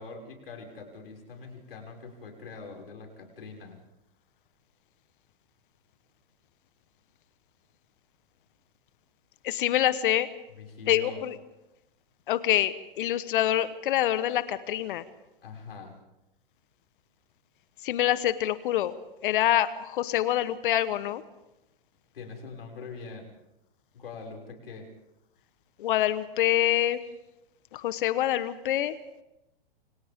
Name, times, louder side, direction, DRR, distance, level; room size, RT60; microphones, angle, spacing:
voice 1, 0.0-3.8 10.5-11.3 15.4-16.0 22.1-23.3 23.9-24.9, left 4 dB, 75° left, 1 dB, 6.4 m, -43 dB
voice 2, 9.4-10.3 10.9-11.3 12.3-15.0 17.8-18.9 19.2-21.2 25.8-27.0 27.7-29.0, left 12 dB, 60° left, 13 dB, 1.3 m, -26 dB
29.0 x 27.5 x 3.8 m, 0.93 s
hypercardioid pair, 110°, 29 cm